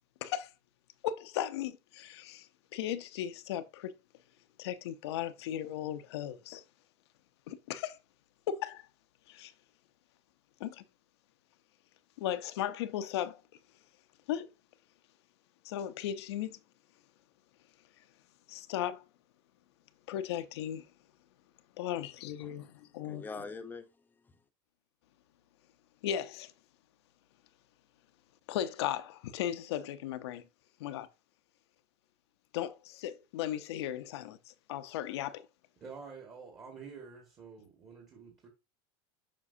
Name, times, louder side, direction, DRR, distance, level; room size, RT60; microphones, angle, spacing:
voice 1, 1.0-2.5 2.7-3.9 4.6-6.6 7.5-8.0 8.5-8.8 9.3-9.5 10.6-10.8 12.2-13.4 14.3-14.5 15.6-16.6 18.5-19.0 20.1-20.9 21.8-23.2 26.0-26.5 28.5-30.4 30.8-31.1 32.5-35.5, left 11 dB, 80° left, 0.7 m, -36 dB
voice 2, 22.4-24.4, left 4 dB, 15° left, 0.9 m, -46 dB
voice 3, 35.8-38.5, right 5 dB, 25° right, 1.8 m, -48 dB
7.4 x 5.4 x 2.7 m
supercardioid pair, 135°, 14 cm